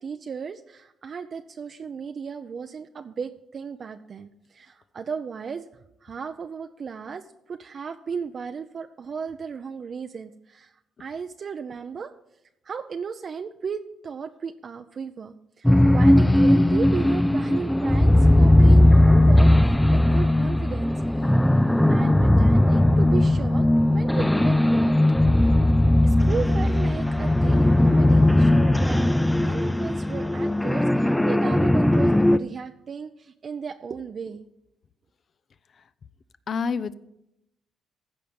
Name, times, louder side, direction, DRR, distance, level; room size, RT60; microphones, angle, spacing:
voice 1, 0.0-5.6 6.0-7.2 7.5-10.7 11.0-12.1 12.6-20.9 21.9-23.7 23.9-25.0 25.3-25.5 26.0-34.4, right 6 dB, 50° right, 7 dB, 0.5 m, -35 dB
sound 1, 15.6-32.4, left 1 dB, 5° left, 0.4 m, -18 dB
voice 2, 22.0-22.3 36.5-36.9, left 5 dB, 50° left, 14 dB, 0.6 m, -28 dB
15.0 x 5.2 x 7.0 m, 0.82 s
cardioid pair, 90°, 0 cm